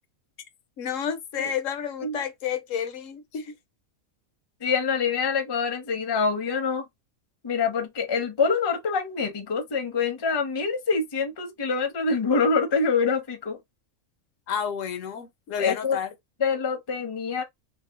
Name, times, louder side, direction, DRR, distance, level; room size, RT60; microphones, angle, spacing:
voice 1, 0.8-3.5 14.5-16.1, left 8 dB, 75° left, 0.9 m, -30 dB
voice 2, 4.6-6.8 7.4-13.6 15.6-16.0 16.4-17.4, left 5 dB, 30° left, 0.5 m, -25 dB
2.7 x 2.0 x 3.4 m
omnidirectional pair, 1.4 m